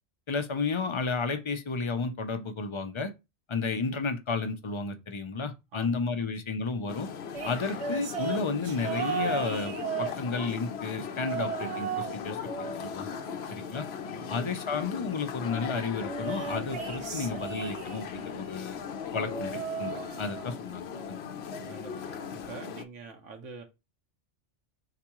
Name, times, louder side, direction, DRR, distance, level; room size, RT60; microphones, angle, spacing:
voice 1, 0.3-3.1 3.5-7.1 7.4-12.5 12.8-13.1 13.5-13.9 14.3-18.8 19.1-19.9 20.2-21.2, left 4 dB, 35° left, 0.4 m, -32 dB
voice 2, 5.7-6.3 14.1-14.5 21.5-23.6, right 4 dB, 85° right, 1.2 m, -46 dB
sound 1, 6.9-22.9, left 7 dB, 65° left, 0.8 m, -38 dB
sound 2, 7.3-10.6 11.2-12.2 12.4-14.0 16.0-18.2 19.1-20.6 20.9-21.3 22.4-22.5, right 6 dB, 65° right, 1.1 m, -36 dB
4.9 x 3.5 x 2.9 m
omnidirectional pair, 1.2 m